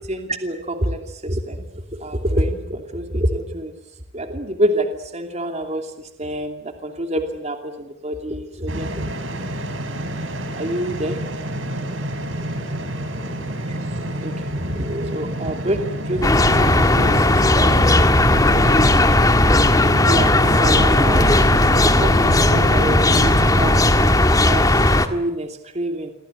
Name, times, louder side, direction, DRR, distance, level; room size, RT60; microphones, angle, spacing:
voice 1, 0.1-1.6 2.0-3.7 4.1-4.9 5.1-5.9 6.2-6.6 6.8-9.0 10.6-11.2 14.2-14.3 14.8-15.8 16.1-17.9 19.1-19.2 20.1-21.2 21.7-24.2 24.4-24.6 25.1-25.5 25.7-26.1, right 1 dB, 35° right, 5 dB, 2.8 m, -26 dB
sound 1, 8.7-23.7, right 1 dB, 75° right, 5.5 m, -28 dB
sound 2, 16.2-25.1, left 1 dB, 20° left, 1.7 m, -16 dB
28.5 x 24.0 x 8.0 m, 0.84 s
head